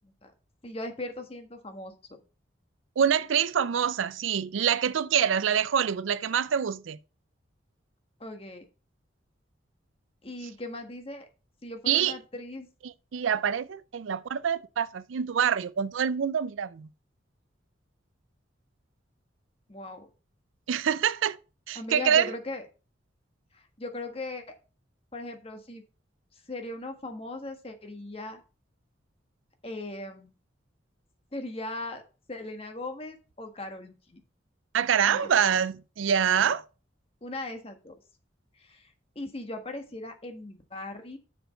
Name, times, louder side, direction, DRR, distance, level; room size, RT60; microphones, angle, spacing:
voice 1, 0.6-2.2 8.2-8.6 10.2-11.3 11.6-12.7 19.7-20.1 21.7-22.6 23.5-24.5 25.1-25.8 26.3-28.4 29.6-30.3 31.3-32.0 32.3-34.2 35.0-35.3 37.2-37.9 38.5-41.2, left 2 dB, 30° left, 1.4 m, -39 dB
voice 2, 3.0-7.0 11.9-12.2 13.1-16.9 20.7-21.4 21.7-22.3 34.7-36.6, right 8 dB, 85° right, 0.4 m, -25 dB
6.9 x 6.2 x 5.1 m
head